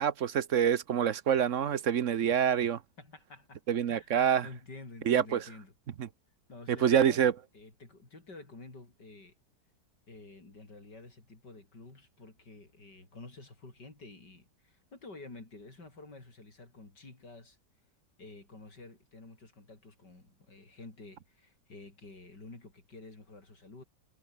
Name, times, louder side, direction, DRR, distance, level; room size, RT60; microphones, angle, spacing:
voice 1, 0.0-2.8 3.7-4.5 5.1-5.4 6.7-7.3, right 8 dB, 55° right, 1.1 m, -26 dB
voice 2, 3.0-3.6 3.9-4.1 4.4-5.7 6.5-9.4 10.1-17.6 18.2-23.8, left 3 dB, 70° left, 6.0 m, -50 dB
omnidirectional pair, 1.9 m